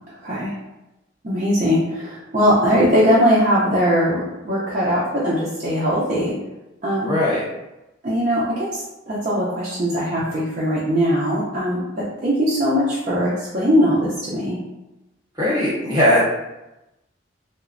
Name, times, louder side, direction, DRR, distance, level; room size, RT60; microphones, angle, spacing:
voice 1, 0.1-0.5 1.2-6.3 6.8-7.1 8.0-14.6, equal, 40° right, -8 dB, 0.4 m, -20 dB
voice 2, 7.0-7.4 15.3-16.2, left 1 dB, 20° right, -7 dB, 0.8 m, -19 dB
2.9 x 2.1 x 2.4 m, 0.97 s
head